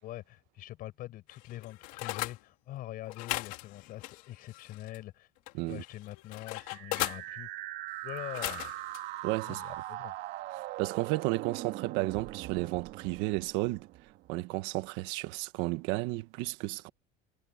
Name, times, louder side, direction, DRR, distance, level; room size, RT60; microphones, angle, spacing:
voice 1, 0.0-5.3 5.7-7.5 8.0-8.7 9.5-10.1, left 15 dB, 45° left, 4.8 m, -44 dB
sound 1, 1.3-2.4 3.1-5.0 5.5-7.2 8.2-9.0 9.5-9.7, left 21 dB, 85° left, 2.5 m, -38 dB
sound 2, 6.5-14.5, right 16 dB, 55° right, 2.4 m, -41 dB
voice 2, 9.2-9.8 10.8-13.9 14.3-16.9, right 20 dB, 75° right, 1.2 m, -33 dB
cardioid pair, 175°, 20 cm